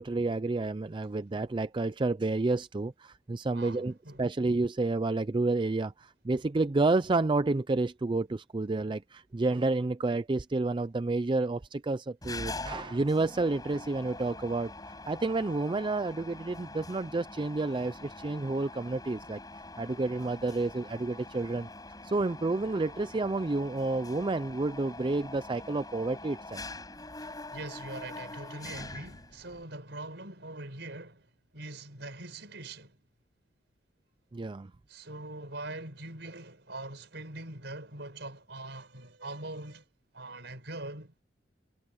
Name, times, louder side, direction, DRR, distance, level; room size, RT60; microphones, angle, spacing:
voice 1, 0.0-19.4 19.8-21.7 22.0-26.6 34.3-34.7, right 3 dB, 25° right, 0.4 m, -30 dB
voice 2, 3.5-4.3 27.2-33.0 34.9-39.8 40.1-41.1, right 2 dB, 65° right, 6.0 m, -43 dB
Mechanisms, 12.2-29.6, left 2 dB, 20° left, 7.8 m, -44 dB
head